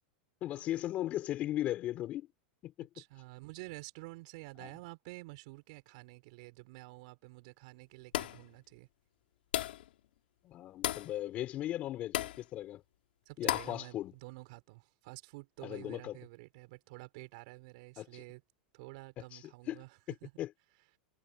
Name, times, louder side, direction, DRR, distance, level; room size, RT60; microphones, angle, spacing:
voice 1, 0.4-2.3 2.6-2.9 4.6-4.7 10.4-12.8 13.4-14.1 15.6-16.2 18.0-18.2 19.3-19.8 20.4-20.5, left 13 dB, 25° left, 6.2 m, -37 dB
voice 2, 2.9-8.9 13.2-18.4 18.7-20.3, right 23 dB, 45° right, 6.3 m, -50 dB
sound 1, 8.1-8.5 9.5-9.9 10.8-11.1 12.1-12.4 13.5-13.8, left 14 dB, 75° left, 3.1 m, -34 dB
supercardioid pair, 175°, 5 cm